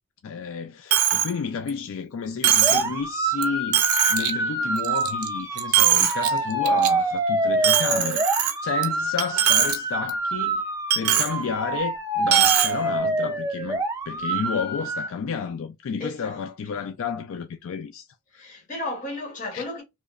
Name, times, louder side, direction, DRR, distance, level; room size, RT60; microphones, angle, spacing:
voice 1, 0.2-8.3 8.6-10.6 10.9-18.1 18.3-18.4 19.5-19.6, left 6 dB, 65° left, 0.3 m, -31 dB
Coin (dropping), 0.9-1.3 1.7-1.8 2.4-2.9 3.4-3.5 3.7-4.3 4.8-5.3 5.6-6.3 6.7-6.9 7.6-8.8 9.2-9.8 10.1-10.2 10.9-11.3 12.3-12.7, right 10 dB, 90° right, 0.5 m, -20 dB
sound 1, 2.6-15.1, right 2 dB, 15° right, 0.4 m, -26 dB
voice 2, 16.0-16.4 16.7-16.8 18.3-19.8, left 2 dB, 35° left, 1.0 m, -34 dB
2.9 x 2.0 x 2.3 m
head